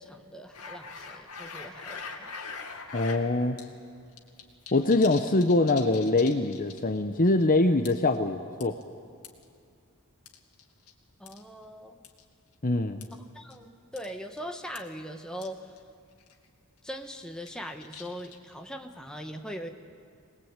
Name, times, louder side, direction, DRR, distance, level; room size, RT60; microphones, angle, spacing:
voice 1, 0.0-2.3 11.2-12.0 13.3-15.6 16.8-19.7, equal, 5° left, 4 dB, 1.4 m, -40 dB
sound 1, 0.5-3.2 3.6-3.7 4.0-7.0 7.3-7.4 7.8-8.2 8.6-9.4 10.2-10.9 11.3-11.4 12.0-12.2 13.0-13.1 13.5-13.6 14.0-14.1 14.4-14.5 14.7-14.8 15.4-15.5 15.8-15.9 16.2-16.4 16.9-18.5, left 5 dB, 75° left, 2.5 m, -42 dB
voice 2, 2.9-3.6 4.7-8.8 12.6-13.1, left 2 dB, 40° left, 8 dB, 0.9 m, -24 dB
23.5 x 20.0 x 9.0 m, 2.3 s
head